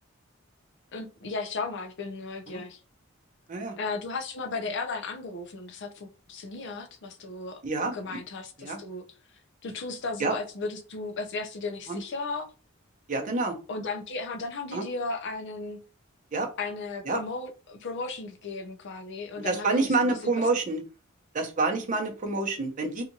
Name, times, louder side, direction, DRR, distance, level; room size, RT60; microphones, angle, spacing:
voice 1, 0.9-2.8 3.8-7.6 7.9-9.0 9.6-12.5 13.7-15.8 16.6-19.9, left 3 dB, 60° left, 7 dB, 0.5 m, -35 dB
voice 2, 7.6-8.0 8.6-8.8 10.2-10.3 11.9-12.0 13.1-13.5 14.7-14.9 16.3-16.5 17.1-17.2 19.4-20.8 21.3-23.0, right 3 dB, 40° right, 3 dB, 0.7 m, -27 dB
2.8 x 2.4 x 2.6 m, 0.35 s
head